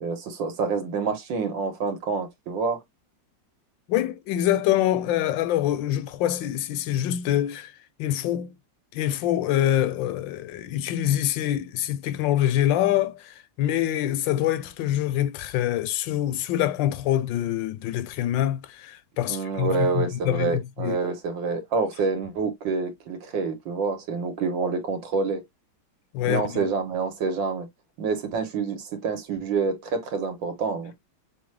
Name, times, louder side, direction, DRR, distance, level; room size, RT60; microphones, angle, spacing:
voice 1, 0.0-2.8 19.3-25.4 26.3-27.7 28.0-30.9, right 4 dB, 80° right, 1.9 m, -27 dB
voice 2, 3.9-7.7 8.0-8.5 8.9-21.0 26.1-26.7, left 12 dB, 80° left, 1.3 m, -25 dB
6.1 x 2.1 x 3.2 m
omnidirectional pair, 2.0 m